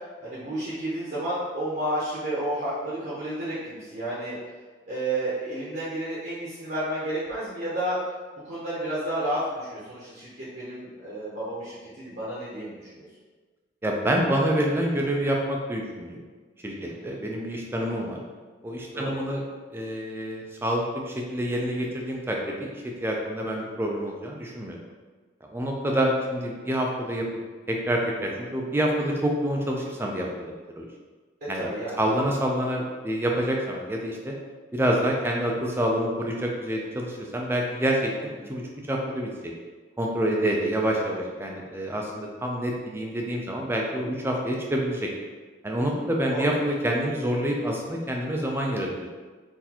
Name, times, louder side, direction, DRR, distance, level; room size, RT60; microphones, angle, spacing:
voice 1, 0.2-4.4 4.9-8.0 8.4-13.1 16.8-17.2 18.9-19.3 23.5-23.7 31.5-32.2 38.4-38.5 45.8-46.0 46.3-46.6, right 1 dB, 45° right, -9 dB, 0.8 m, -31 dB
voice 2, 13.8-16.2 16.6-18.2 18.6-24.8 25.5-27.3 27.7-30.5 30.8-30.9 31.5-31.7 32.0-34.3 34.7-38.6 38.9-39.5 40.0-45.1 45.6-49.1, equal, 10° right, -1 dB, 0.4 m, -27 dB
3.9 x 2.6 x 2.8 m, 1.4 s
head